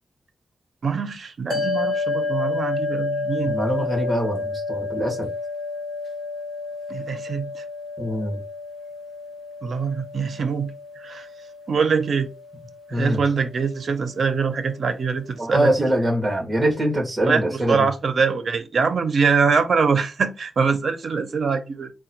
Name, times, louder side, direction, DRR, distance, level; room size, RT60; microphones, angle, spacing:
voice 1, 0.8-3.5 6.9-7.6 9.6-11.3 11.7-12.3 12.9-15.9 17.2-21.9, right 5 dB, 60° right, 0.6 m, -23 dB
sound 1, 1.5-14.0, left 3 dB, 50° left, 0.9 m, -30 dB
voice 2, 3.4-5.3 8.0-8.4 12.9-13.2 15.4-17.9, right 1 dB, 10° right, 1.5 m, -23 dB
3.7 x 2.3 x 4.3 m
wide cardioid pair, 155°, 0 cm